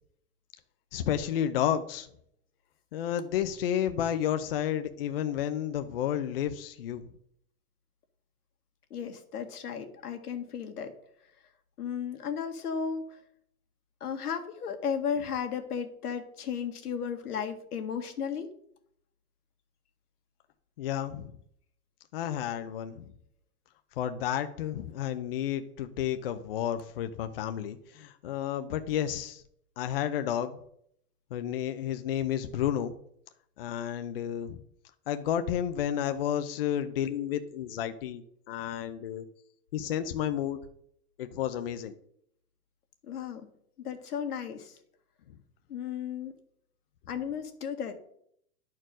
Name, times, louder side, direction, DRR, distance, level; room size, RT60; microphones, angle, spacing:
voice 1, 0.9-2.1 2.9-7.1 20.8-21.3 22.1-23.0 24.0-29.4 29.8-30.6 31.3-32.9 33.6-34.6 35.1-39.2 39.7-40.6 41.2-41.9, left 10 dB, 40° left, 9 dB, 0.6 m, -31 dB
voice 2, 8.9-10.9 11.8-13.1 14.0-18.5 43.1-43.5 43.8-44.8 45.7-46.3 47.1-48.0, left 7 dB, 90° left, 5 dB, 1.8 m, -34 dB
11.0 x 4.6 x 6.0 m, 0.69 s
hypercardioid pair, 165°, 44 cm